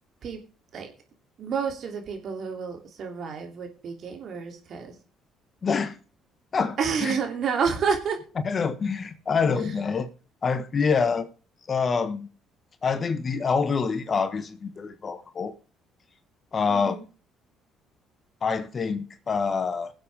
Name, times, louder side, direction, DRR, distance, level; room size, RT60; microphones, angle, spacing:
voice 1, 1.4-5.0 6.8-8.2 16.7-17.0, right 6 dB, 55° right, 2.8 m, -29 dB
voice 2, 5.6-6.0 6.5-7.2 8.4-10.1 10.4-11.3 11.7-12.3 12.8-15.5 16.5-17.0 18.4-19.9, left 5 dB, 40° left, 1.4 m, -26 dB
21.5 x 7.8 x 3.5 m
hypercardioid pair, 50°, 0 cm